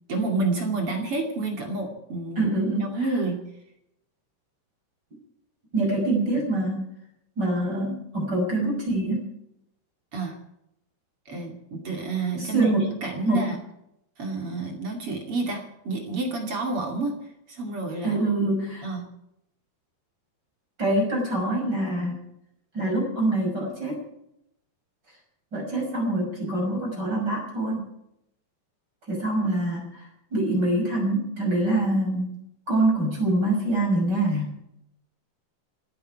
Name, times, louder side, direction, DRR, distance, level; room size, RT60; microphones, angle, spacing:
voice 1, 0.1-2.5 2.8-3.4 10.1-10.4 11.3-12.7 13.0-13.6 14.2-17.2 17.5-18.2 18.8-19.0, right 3 dB, 35° right, 2 dB, 2.7 m, -29 dB
voice 2, 2.4-2.9 5.7-6.9 7.4-9.3 12.4-12.9 13.2-13.5 18.0-18.9 20.8-22.2 22.7-24.0 25.5-27.9 29.1-32.4 32.7-34.5, right 2 dB, 20° right, 0 dB, 6.2 m, -25 dB
27.0 x 10.5 x 4.7 m, 0.81 s
omnidirectional pair, 5.2 m